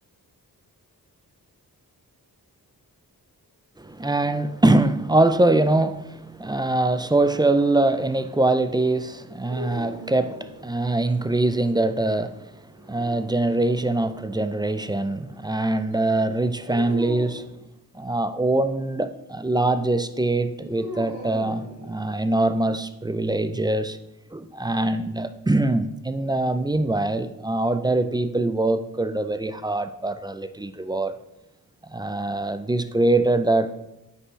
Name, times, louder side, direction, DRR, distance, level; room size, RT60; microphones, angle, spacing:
voice 1, 3.8-12.5 12.9-17.5 17.9-24.0 24.3-31.1 31.9-33.7, right 2 dB, 10° right, 0.3 m, -23 dB
sound 1, 9.5-11.1 12.7-13.8 16.7-17.5 20.7-22.4, equal, 55° right, 2.3 m, -38 dB
9.5 x 5.5 x 3.1 m
wide cardioid pair, 95°, 37 cm